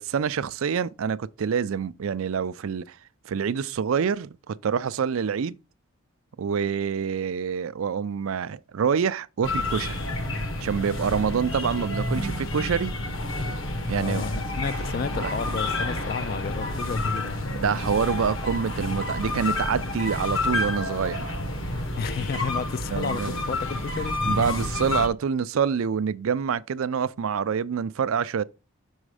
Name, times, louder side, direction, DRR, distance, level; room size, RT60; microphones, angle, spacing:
voice 1, 0.0-3.0 3.3-5.6 6.4-10.0 10.6-12.9 13.9-14.3 15.1-15.3 17.5-21.3 22.9-23.4 24.3-28.4, right 6 dB, 75° right, 0.4 m, -26 dB
sound 1, 9.4-25.1, left 2 dB, 65° left, 1.2 m, -29 dB
voice 2, 13.9-17.5 22.0-24.2, left 5 dB, 45° left, 0.3 m, -32 dB
6.3 x 4.9 x 4.8 m
head